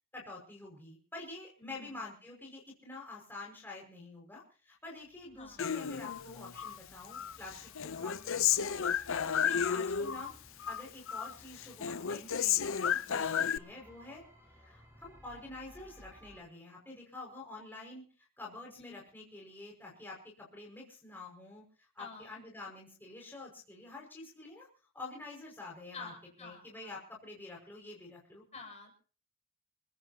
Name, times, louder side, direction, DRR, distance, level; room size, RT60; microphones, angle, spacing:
voice 1, 0.1-7.6 7.8-8.7 9.3-10.3 10.6-14.2 14.5-18.0 18.4-24.7 24.9-26.1 26.4-28.4, left 2 dB, 10° left, -2 dB, 5.7 m, -48 dB
voice 2, 1.6-2.0 5.4-5.6 9.5-9.9 13.1-13.5 18.8-18.9 22.0-22.3 25.9-26.9 28.5-29.0, left 4 dB, 30° left, 2 dB, 6.5 m, -49 dB
sound 1, 5.0-16.4, equal, 10° right, 5.9 m, -59 dB
Human voice, 5.6-6.8 7.1-10.3 10.6-11.3 11.6-13.6, left 8 dB, 60° left, 0.7 m, -32 dB
29.5 x 15.0 x 2.9 m, 0.41 s
head